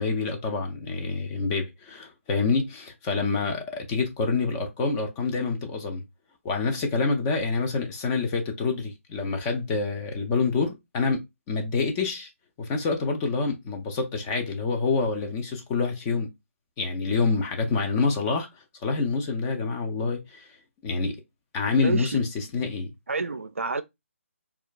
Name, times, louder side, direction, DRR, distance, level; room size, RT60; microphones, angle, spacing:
voice 1, 0.0-6.0 6.4-12.3 12.6-16.3 16.8-18.5 18.8-20.5 20.8-21.2 21.5-22.9, left 4 dB, 15° left, 0.3 m, -27 dB
voice 2, 21.8-22.2 23.1-23.8, right 4 dB, 65° right, 0.4 m, -28 dB
4.2 x 2.3 x 2.3 m
figure-of-eight pair, 145°, 8 cm